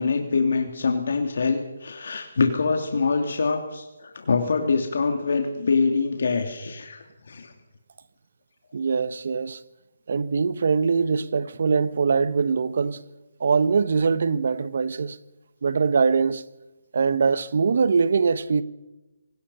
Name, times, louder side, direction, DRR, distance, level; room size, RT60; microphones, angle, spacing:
voice 1, 0.0-7.5, left 4 dB, 65° left, 2.8 m, -24 dB
voice 2, 8.7-9.6 10.1-13.0 13.4-15.2 15.6-16.4 16.9-18.6, right 5 dB, 60° right, 1.2 m, -22 dB
25.5 x 19.0 x 5.6 m
hypercardioid pair, 165°, 0 cm